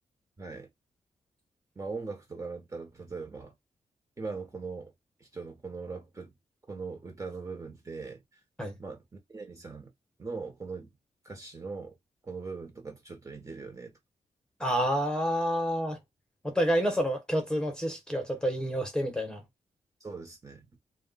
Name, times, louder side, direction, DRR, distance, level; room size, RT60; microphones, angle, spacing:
voice 1, 0.4-0.7 1.8-3.5 4.2-4.9 5.2-6.3 6.7-8.2 8.8-9.9 10.2-10.9 11.2-12.0 12.2-13.9 20.0-20.7, right 4 dB, 25° right, 1.0 m, -40 dB
voice 2, 14.6-16.0 16.4-19.4, equal, 5° left, 1.0 m, -28 dB
2.3 x 2.0 x 3.8 m
cardioid pair, 100°, 12 cm